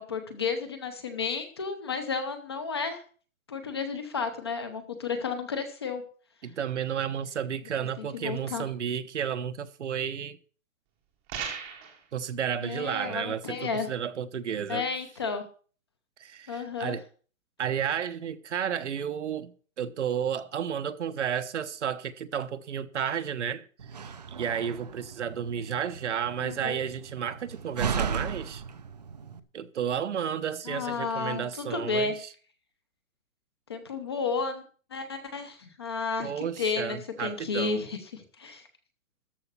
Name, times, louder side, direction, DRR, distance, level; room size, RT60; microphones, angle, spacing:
voice 1, 0.0-3.0 3.5-6.0 8.0-8.7 12.6-13.9 14.7-15.4 16.5-17.0 26.4-26.8 30.6-32.2 33.7-34.6 34.9-38.7, left 5 dB, 20° left, 0.8 m, -32 dB
voice 2, 6.4-10.4 12.1-14.8 16.2-17.0 17.6-23.7 24.0-28.6 29.5-32.1 36.2-37.8, right 8 dB, 55° right, 1.0 m, -32 dB
sound 1, 11.3-12.0, right 7 dB, 10° right, 0.9 m, -36 dB
Slam, 23.8-29.4, right 6 dB, 30° right, 0.7 m, -36 dB
13.5 x 5.2 x 8.4 m
hypercardioid pair, 175°, 41 cm